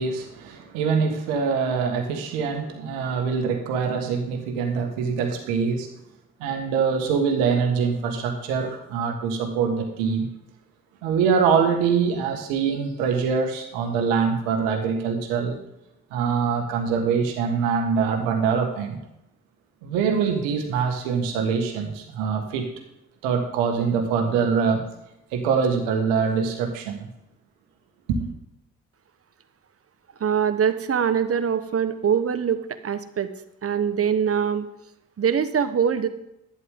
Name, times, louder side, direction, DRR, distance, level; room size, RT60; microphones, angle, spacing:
voice 1, 0.0-5.9 6.4-10.3 11.0-15.6 16.1-19.0 19.8-22.7 23.2-24.8 25.3-27.1 28.1-28.3, right 6 dB, 80° right, 4 dB, 1.7 m, -24 dB
voice 2, 30.2-33.3 33.6-34.7 35.2-36.1, right 7 dB, 40° right, 11 dB, 1.1 m, -23 dB
11.0 x 10.0 x 3.7 m, 0.86 s
hypercardioid pair, 45°, 34 cm